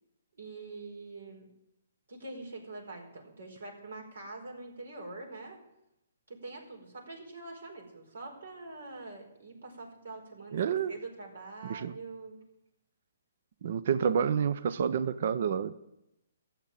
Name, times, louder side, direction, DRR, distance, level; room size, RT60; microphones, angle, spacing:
voice 1, 0.3-1.5 2.1-5.6 6.3-12.4, right 3 dB, 80° right, 2 dB, 4.7 m, -44 dB
voice 2, 10.5-10.9 11.6-11.9 13.6-15.7, right 7 dB, 50° right, 14 dB, 0.6 m, -29 dB
14.0 x 7.4 x 9.1 m, 0.86 s
hypercardioid pair, 155°, 0 cm